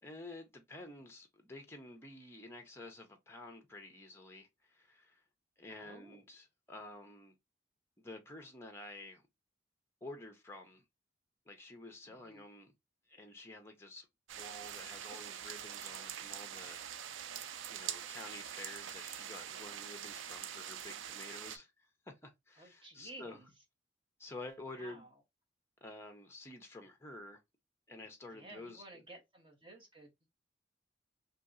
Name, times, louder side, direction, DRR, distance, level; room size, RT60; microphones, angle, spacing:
voice 1, 0.0-5.2 5.6-7.4 8.0-9.2 10.0-10.8 11.5-12.7 13.1-14.1 14.4-17.4 17.7-23.4 24.2-25.1 25.8-27.4 27.9-28.8, left 2 dB, 15° left, 0.6 m, -50 dB
voice 2, 5.7-6.2 12.1-12.4 22.6-23.5 24.7-25.1 28.3-30.3, right 1 dB, 30° right, 1.0 m, -54 dB
sound 1, 14.3-21.6, right 9 dB, 80° right, 0.4 m, -44 dB
2.8 x 2.7 x 2.5 m
head